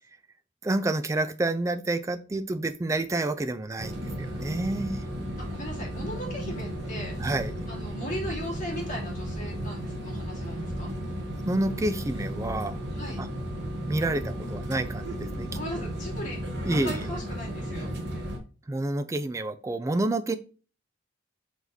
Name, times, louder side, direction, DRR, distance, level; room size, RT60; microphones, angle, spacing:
voice 1, 0.6-5.0 7.2-7.5 11.4-12.8 13.2-13.3 13.9-15.5 16.7-17.1 18.7-20.4, right 2 dB, 15° right, 10 dB, 0.3 m, -29 dB
sound 1, 3.8-18.4, equal, 60° right, 1.0 m, -34 dB
voice 2, 5.4-7.2 7.7-10.9 12.9-13.2 15.5-16.4 16.7-17.9, equal, 40° left, -2 dB, 2.0 m, -38 dB
4.5 x 3.9 x 2.7 m, 0.36 s
head